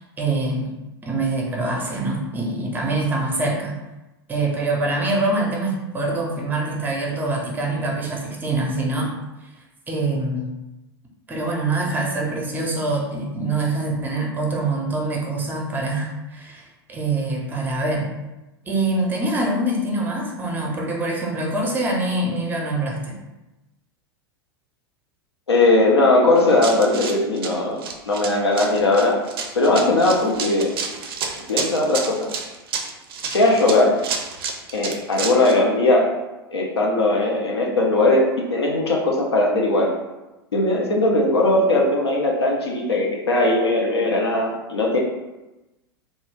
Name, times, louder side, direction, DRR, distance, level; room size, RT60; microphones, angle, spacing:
voice 1, 0.2-0.7 1.0-3.8 4.3-9.1 9.9-10.5 11.3-18.1 18.7-23.2, right 2 dB, 15° right, -1 dB, 0.6 m, -24 dB
voice 2, 25.5-27.8 28.0-29.1 29.5-30.7 31.4-32.3 33.2-34.0 34.7-36.1 36.5-39.9 40.5-45.0, left 2 dB, 85° left, -1 dB, 0.6 m, -19 dB
Run, 26.4-35.6, right 5 dB, 65° right, 0.4 m, -30 dB
2.2 x 2.0 x 3.2 m, 1.0 s
figure-of-eight pair, 90°, 13 cm